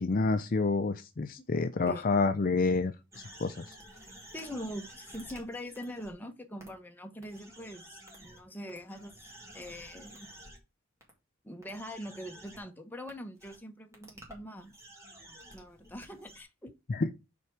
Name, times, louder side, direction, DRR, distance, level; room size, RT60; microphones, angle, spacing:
voice 1, 0.0-3.7 16.9-17.1, left 3 dB, 45° left, 0.5 m, -29 dB
voice 2, 1.9-2.2 4.3-10.3 11.4-14.8 15.5-16.7, equal, 10° left, 1.0 m, -43 dB
sound 1, 3.1-6.1 6.6-6.7 7.2-8.4 8.7-10.6 11.0-11.1 11.6-12.6 13.1-13.2 13.4-13.6 13.9-16.4, right 1 dB, 15° right, 2.2 m, -52 dB
5.9 x 4.5 x 6.1 m
head